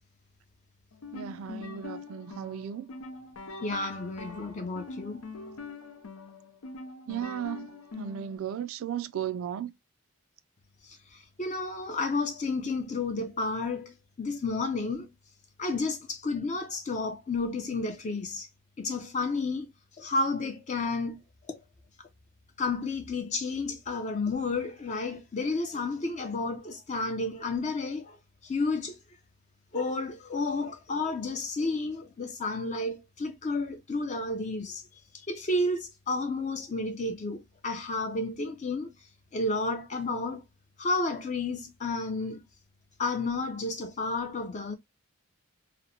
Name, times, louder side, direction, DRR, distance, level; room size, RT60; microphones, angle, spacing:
sound 1, 0.9-8.4, left 3 dB, 90° left, 0.6 m, -43 dB
voice 1, 1.1-2.9 7.1-7.7 8.0-9.7, right 9 dB, 65° right, 0.3 m, -35 dB
voice 2, 3.6-5.2 11.4-13.9 14.2-15.1 15.6-18.5 18.8-19.7 20.0-21.2 21.5-21.6 22.6-28.2 28.4-29.0 29.7-34.8 35.3-38.9 39.3-40.4 40.8-42.4 43.0-44.8, left 3 dB, 35° left, 0.4 m, -31 dB
2.9 x 2.1 x 2.6 m
head